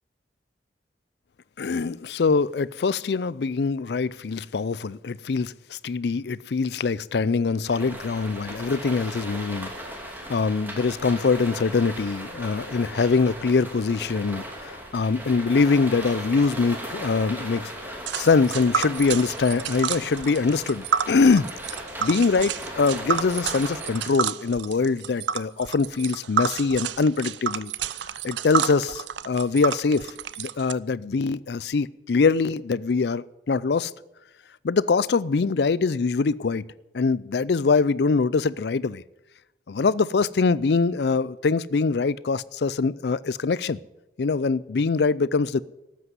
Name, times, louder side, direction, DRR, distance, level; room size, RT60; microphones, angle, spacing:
voice 1, 1.6-9.7 10.3-17.7 18.2-27.7 28.2-33.9 34.6-36.6 36.9-39.0 39.7-43.8 44.2-45.6, left 4 dB, 65° left, 0.4 m, -23 dB
sound 1, 7.6-24.1, equal, 10° right, 2.8 m, -37 dB
Tick, 18.1-30.7, right 7 dB, 80° right, 0.5 m, -29 dB
13.5 x 8.5 x 9.4 m
head